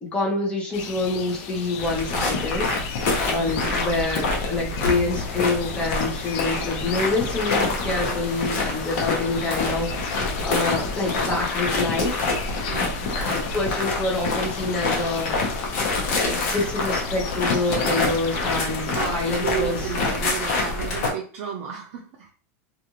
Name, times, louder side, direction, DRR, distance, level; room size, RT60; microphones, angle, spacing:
voice 1, 0.0-2.8 3.2-12.2 13.2-15.4 16.1-19.8, left 2 dB, 15° left, -1 dB, 0.7 m, -27 dB
sound 1, 0.7-20.3, left 8 dB, 45° left, 0.3 m, -36 dB
sound 2, 1.8-21.1, left 3 dB, 60° left, 0.8 m, -26 dB
voice 2, 12.7-13.2 18.9-22.3, right 8 dB, 55° right, -2 dB, 0.5 m, -33 dB
2.5 x 2.4 x 3.0 m, 0.42 s
supercardioid pair, 160°, 8 cm